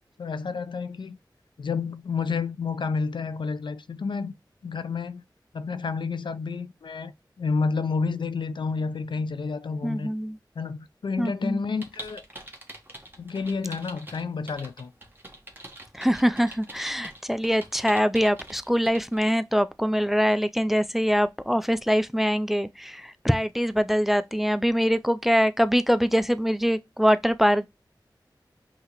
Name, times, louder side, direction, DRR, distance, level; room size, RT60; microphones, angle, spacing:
voice 1, 0.2-1.2 1.6-4.3 4.6-5.2 5.5-7.1 7.4-10.1 10.6-12.2 13.2-14.9, left 4 dB, 80° left, 0.4 m, -30 dB
voice 2, 9.8-10.4 11.2-11.6 15.9-27.7, equal, 5° right, 0.3 m, -23 dB
sound 1, 11.8-19.2, right 1 dB, 25° right, 1.0 m, -44 dB
5.7 x 2.8 x 2.9 m
wide cardioid pair, 75°, 8 cm